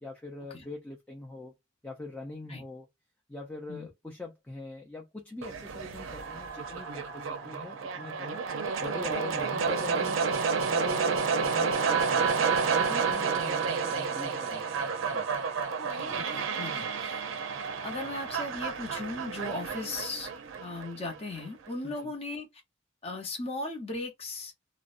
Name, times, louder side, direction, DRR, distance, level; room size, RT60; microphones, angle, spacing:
voice 1, 0.0-1.5 1.8-2.9 3.3-8.4 8.8-10.2 10.7-15.3 21.8-22.1, left 2 dB, 10° left, 0.4 m, -43 dB
sound 1, 5.4-21.4, right 5 dB, 90° right, 0.5 m, -30 dB
voice 2, 15.9-17.2 17.8-20.3 20.6-22.5 23.0-24.5, left 2 dB, 30° left, 0.7 m, -37 dB
2.5 x 2.0 x 2.4 m
head